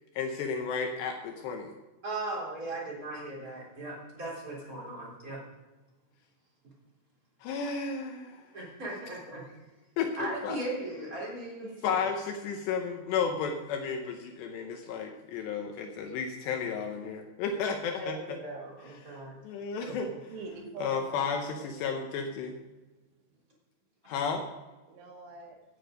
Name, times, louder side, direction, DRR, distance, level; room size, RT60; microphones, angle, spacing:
voice 1, 0.1-1.8 7.4-8.5 10.0-10.6 11.8-18.4 18.8-20.3 20.8-22.6 24.1-24.4, left 5 dB, 75° left, 4 dB, 2.7 m, -33 dB
voice 2, 2.0-5.4 8.5-9.4 10.2-12.0 18.0-19.4 19.8-20.1, right 2 dB, 20° right, -4 dB, 3.4 m, -38 dB
voice 3, 20.3-22.3 24.9-25.6, right 4 dB, 80° right, 2 dB, 4.4 m, -45 dB
16.5 x 9.2 x 5.1 m, 1.2 s
omnidirectional pair, 5.7 m